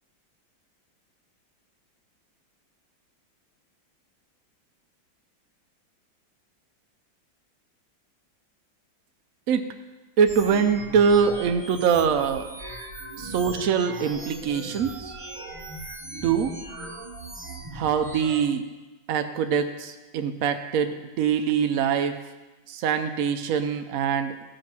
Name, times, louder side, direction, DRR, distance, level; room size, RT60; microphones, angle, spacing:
voice 1, 10.2-12.5 13.2-15.1 16.2-16.5 17.7-18.6 19.1-22.1 22.7-24.4, right 7 dB, 70° right, 6 dB, 0.8 m, -23 dB
sound 1, 10.3-18.4, right 2 dB, 30° right, 0.6 m, -39 dB
14.0 x 5.2 x 6.0 m, 1.2 s
omnidirectional pair, 2.1 m